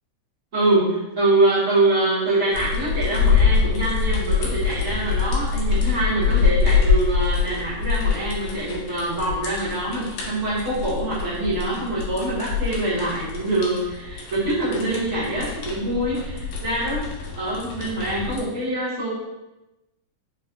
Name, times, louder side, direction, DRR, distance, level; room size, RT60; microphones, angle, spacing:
voice 1, 0.5-17.0 17.3-19.1, right 2 dB, 85° right, -13 dB, 0.6 m, -24 dB
sound 1, 2.5-18.5, left 5 dB, 85° left, 2.2 m, -25 dB
5.0 x 2.2 x 2.5 m, 1.0 s
omnidirectional pair, 3.6 m